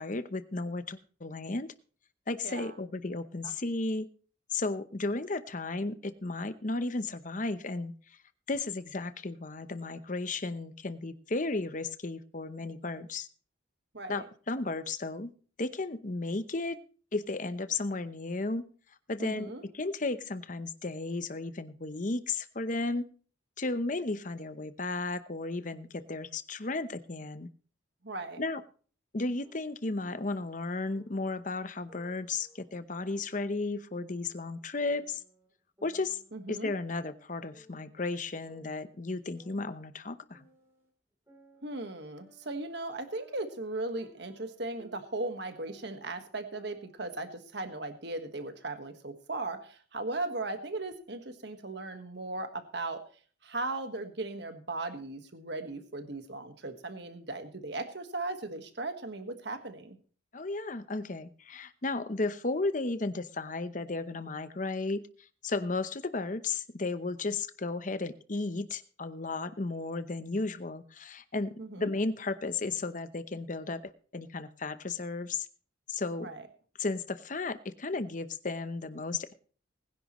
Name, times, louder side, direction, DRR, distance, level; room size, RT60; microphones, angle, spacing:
voice 1, 0.0-1.7 2.3-4.1 4.5-8.2 8.5-13.3 14.1-15.3 15.6-16.8 17.1-18.6 19.1-23.0 23.6-27.5 28.4-28.6 29.1-35.2 35.8-36.2 36.5-40.4 60.3-65.0 65.4-75.5 75.9-76.3 76.8-79.3, left 3 dB, 40° left, 12 dB, 0.8 m, -34 dB
voice 2, 2.4-2.7 3.4-3.5 13.9-14.3 19.2-19.6 28.0-28.4 36.3-36.7 41.6-53.0 53.4-60.0 71.6-71.9 76.2-76.5, right 2 dB, 60° right, 7 dB, 1.5 m, -37 dB
sound 1, 29.4-30.5 30.9-31.4 31.9-33.5 33.9-35.5 35.8-37.3 37.5-38.0 38.5-40.9 41.3-45.4 45.7-47.0, right 1 dB, 15° right, 3.3 m, -60 dB
20.5 x 10.5 x 3.1 m, 0.41 s
head